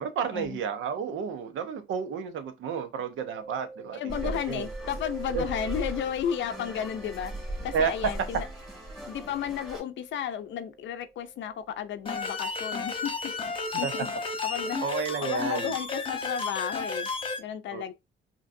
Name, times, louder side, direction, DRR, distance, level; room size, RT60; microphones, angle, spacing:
voice 1, 0.0-4.7 5.3-5.4 7.7-7.9 13.8-13.9 14.8-15.7 17.7-17.8, right 6 dB, 75° right, 0.8 m, -31 dB
Mallet percussion, 3.3-12.8, right 3 dB, 35° right, 1.7 m, -46 dB
voice 2, 3.9-8.5 9.1-13.3 13.8-14.1 14.4-14.8 15.2-17.1 17.4-17.9, left 9 dB, 70° left, 0.5 m, -33 dB
sound 1, 4.1-9.8, right 1 dB, ahead, 2.1 m, -38 dB
sound 2, 12.1-17.4, left 4 dB, 25° left, 1.0 m, -32 dB
5.1 x 2.9 x 2.6 m
cardioid pair, 90°, 20 cm